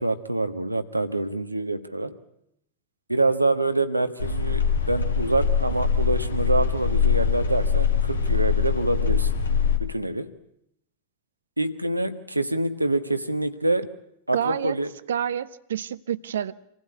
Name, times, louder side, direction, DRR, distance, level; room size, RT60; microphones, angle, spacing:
voice 1, 0.0-2.2 3.1-9.3 9.8-10.3 11.6-13.9 14.3-14.9, right 2 dB, 85° right, 1.4 m, -26 dB
sound 1, 4.2-9.8, left 6 dB, 70° left, 2.2 m, -23 dB
voice 2, 14.3-14.8 15.1-16.5, right 9 dB, 65° right, 0.9 m, -28 dB
26.5 x 16.0 x 9.7 m
figure-of-eight pair, 90°, 0 cm